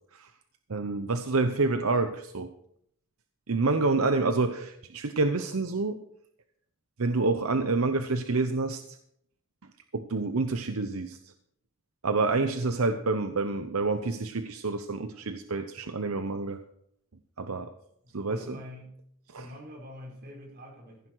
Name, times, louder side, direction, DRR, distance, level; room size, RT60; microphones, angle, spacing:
voice 1, 0.7-2.5 3.5-6.0 7.0-9.0 9.9-11.2 12.0-16.6 17.4-17.7 18.1-18.6 19.3-19.5, right 3 dB, 80° right, 8 dB, 0.8 m, -28 dB
voice 2, 18.2-19.0 19.3-21.1, left 1 dB, 50° right, -2 dB, 5.1 m, -45 dB
16.0 x 9.8 x 4.7 m, 0.71 s
head